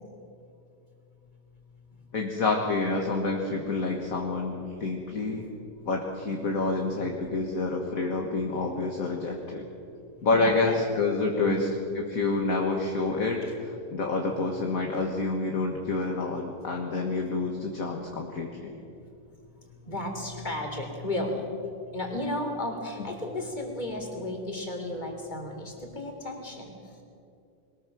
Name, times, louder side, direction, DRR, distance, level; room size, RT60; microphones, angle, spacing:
voice 1, 2.1-5.4 5.9-9.7 10.2-11.7 12.0-18.8 23.0-23.1, left 3 dB, 50° left, 1 dB, 1.9 m, -28 dB
voice 2, 10.3-10.8 11.3-11.6 19.8-26.7, left 1 dB, 25° left, 2 dB, 3.3 m, -33 dB
22.0 x 20.0 x 6.2 m, 2.7 s
omnidirectional pair, 2.0 m